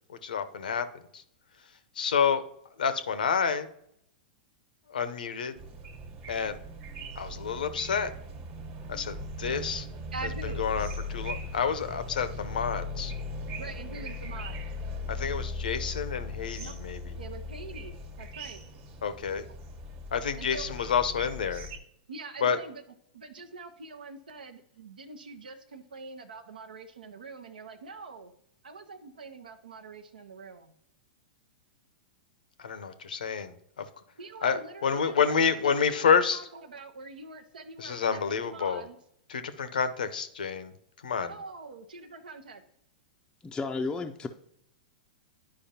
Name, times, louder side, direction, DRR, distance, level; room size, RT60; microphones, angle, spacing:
voice 1, 0.2-0.9 1.1-1.2 2.0-2.4 2.8-3.7 4.9-5.5 6.3-6.6 7.2-8.1 8.9-9.9 10.6-13.1 15.1-17.1 19.0-19.4 20.1-21.7 22.4-22.6 32.6-33.5 34.4-36.5 37.8-38.8 39.3-40.7 41.0-41.3, left 6 dB, 75° left, 12 dB, 0.7 m, -28 dB
sound 1, 5.6-21.8, left 2 dB, 40° right, 1.3 m, -39 dB
voice 2, 10.1-10.7 13.6-14.6 16.6-16.7 17.2-18.6 20.4-20.7 22.1-22.8 23.1-28.3 28.6-30.7 34.2-39.0 41.3-42.6, right 3 dB, 80° right, 6 dB, 0.7 m, -44 dB
voice 3, 43.4-44.3, left 3 dB, 15° left, 3 dB, 0.4 m, -32 dB
10.5 x 4.9 x 2.8 m, 0.73 s
hypercardioid pair, 105°, 5 cm